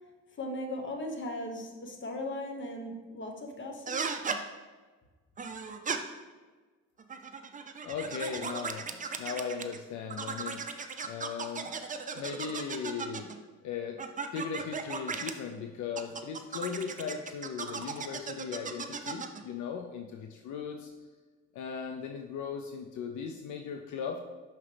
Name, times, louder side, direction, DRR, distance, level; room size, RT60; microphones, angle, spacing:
voice 1, 0.4-4.1, left 1 dB, 40° left, 3 dB, 1.0 m, -38 dB
sound 1, 3.9-4.4 5.4-6.0 7.0-9.8 10.1-13.4 14.0-15.3 16.0-19.4, right 5 dB, 25° right, 0.5 m, -36 dB
voice 2, 7.8-10.6 11.0-11.7 12.0-13.3 13.6-14.0 14.3-20.9 21.5-24.2, left 6 dB, 75° left, 3 dB, 0.5 m, -38 dB
6.0 x 5.7 x 3.3 m, 1.4 s
cardioid pair, 90°, 30 cm